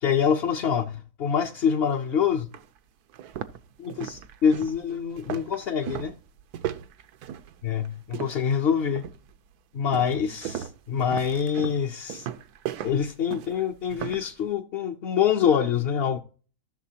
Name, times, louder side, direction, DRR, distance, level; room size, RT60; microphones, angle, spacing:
voice 1, 0.0-2.5 3.8-6.1 7.6-9.0 9.7-12.3 12.8-16.2, left 7 dB, 50° left, 0.8 m, -25 dB
sound 1, 1.9-2.0 2.5-2.7 3.1-8.6 9.0-9.4 9.9-14.3, right 10 dB, 85° right, 1.2 m, -37 dB
14.5 x 6.7 x 2.8 m
omnidirectional pair, 1.6 m